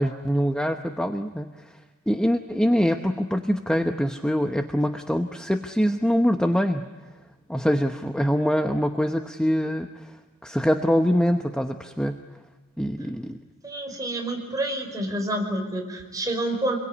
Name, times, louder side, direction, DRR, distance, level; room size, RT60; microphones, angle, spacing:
voice 1, 0.0-1.7 2.1-6.8 7.5-10.1 10.4-12.2 12.8-13.4, equal, 5° left, 5 dB, 0.9 m, -24 dB
voice 2, 13.6-16.8, right 1 dB, 15° right, 1 dB, 5.1 m, -28 dB
27.0 x 22.5 x 9.7 m, 1.2 s
head